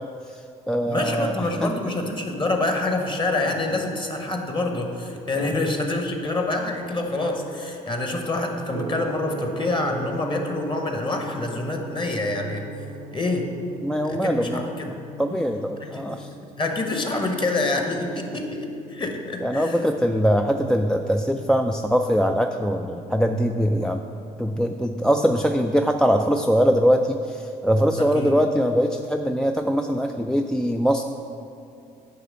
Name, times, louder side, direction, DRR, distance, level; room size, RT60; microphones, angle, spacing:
voice 1, 0.0-1.7 5.4-5.5 13.8-14.7 15.2-16.3 19.4-24.0 24.4-31.0, equal, 5° left, 4 dB, 0.3 m, -22 dB
voice 2, 0.9-12.6 13.1-13.5 14.1-15.0 15.8-16.2 16.6-19.8 28.0-28.4, left 2 dB, 25° left, 3 dB, 1.2 m, -26 dB
Gong, 8.7-26.6, right 2 dB, 85° right, 0.8 m, -41 dB
9.1 x 3.3 x 6.4 m, 2.6 s
hypercardioid pair, 55°, 19 cm